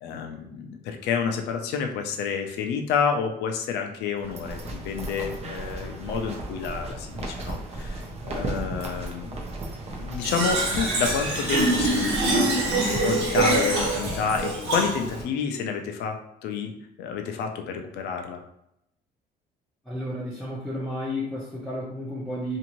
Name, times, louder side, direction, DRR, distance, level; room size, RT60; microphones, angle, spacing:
voice 1, 0.0-9.4 10.0-12.5 12.8-16.2 16.4-16.7 17.0-18.4, left 6 dB, 80° left, 4 dB, 0.5 m, -29 dB
sound 1, 4.2-14.4, right 2 dB, 40° right, 0.7 m, -35 dB
Fill (with liquid), 10.2-15.2, right 2 dB, 85° right, 1.3 m, -24 dB
voice 2, 19.9-22.6, left 1 dB, ahead, -7 dB, 0.7 m, -32 dB
2.7 x 2.5 x 3.0 m, 0.79 s
cardioid pair, 110°, 17 cm